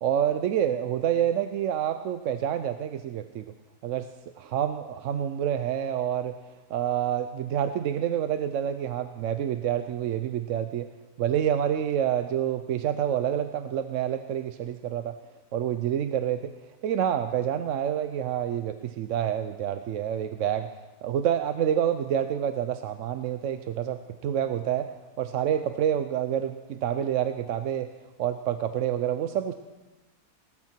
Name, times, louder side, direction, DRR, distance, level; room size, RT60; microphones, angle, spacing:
voice 1, 0.0-3.4 3.8-4.1 4.4-6.3 6.7-10.9 11.2-15.1 15.5-16.5 16.8-20.7 21.0-24.9 25.2-27.9 28.2-29.5, right 10 dB, 65° right, 9 dB, 0.9 m, -28 dB
18.5 x 13.0 x 4.5 m, 1.1 s
omnidirectional pair, 1.6 m